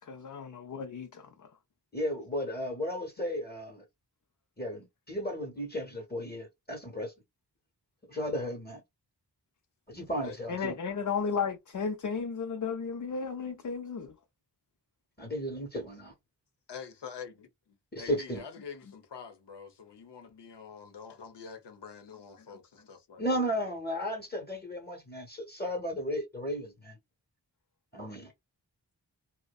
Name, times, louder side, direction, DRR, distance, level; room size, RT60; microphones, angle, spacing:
voice 1, 0.1-1.5 10.5-14.1, left 5 dB, 45° left, 0.5 m, -34 dB
voice 2, 1.9-3.8 4.6-7.1 8.1-8.8 9.9-10.8 15.2-16.1 17.9-18.4 23.2-27.0 27.9-28.3, equal, 25° left, 0.8 m, -34 dB
voice 3, 16.7-23.5, left 6 dB, 75° left, 0.8 m, -46 dB
2.6 x 2.1 x 2.3 m
wide cardioid pair, 75°, 42 cm